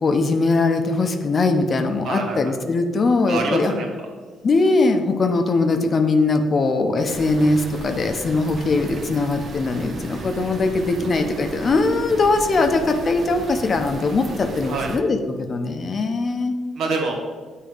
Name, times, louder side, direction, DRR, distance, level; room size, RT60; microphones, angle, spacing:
voice 1, 0.0-3.7 4.4-16.6, left 3 dB, 40° left, 6 dB, 0.6 m, -21 dB
voice 2, 2.0-2.5 3.3-3.9 14.7-14.9 16.7-17.1, right 3 dB, 70° right, 1 dB, 1.2 m, -25 dB
sound 1, 7.1-15.0, right 2 dB, 50° right, 0.9 m, -35 dB
8.0 x 2.7 x 4.9 m, 1.4 s
cardioid pair, 80°, 0 cm